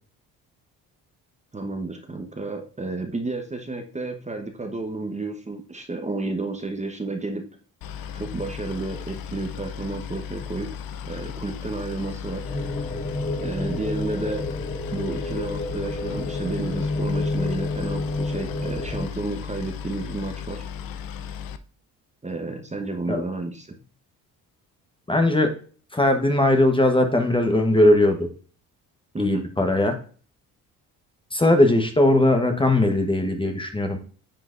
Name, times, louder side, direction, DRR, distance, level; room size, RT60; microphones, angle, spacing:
voice 1, 1.5-7.4 8.1-10.7 11.1-12.4 13.4-14.5 14.9-20.7 22.2-23.8 29.1-29.4, right 2 dB, 20° right, 4 dB, 1.0 m, -31 dB
Boat Water vehicle, 7.8-21.6, left 8 dB, 65° left, 0.7 m, -36 dB
sound 1, 12.4-19.0, left 2 dB, 40° left, 3.2 m, -29 dB
voice 2, 25.1-25.5 25.9-28.3 29.2-30.0 31.3-34.0, left 1 dB, 15° left, 5 dB, 1.1 m, -19 dB
10.0 x 3.9 x 2.5 m, 0.41 s
supercardioid pair, 75°, 38 cm